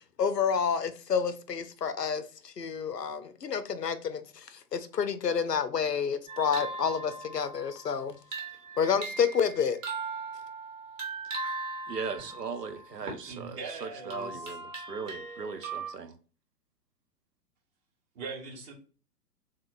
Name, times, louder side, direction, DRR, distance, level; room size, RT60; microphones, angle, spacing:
voice 1, 0.0-8.2 8.8-9.8, left 6 dB, 90° left, 0.6 m, -29 dB
sound 1, 6.3-13.3 13.8-15.9, right 3 dB, 55° right, 1.6 m, -39 dB
voice 2, 11.9-16.2, right 5 dB, 90° right, 0.7 m, -38 dB
voice 3, 13.2-14.6 18.1-18.7, right 4 dB, 20° right, 0.7 m, -41 dB
3.7 x 2.9 x 2.3 m
figure-of-eight pair, 115°, 47 cm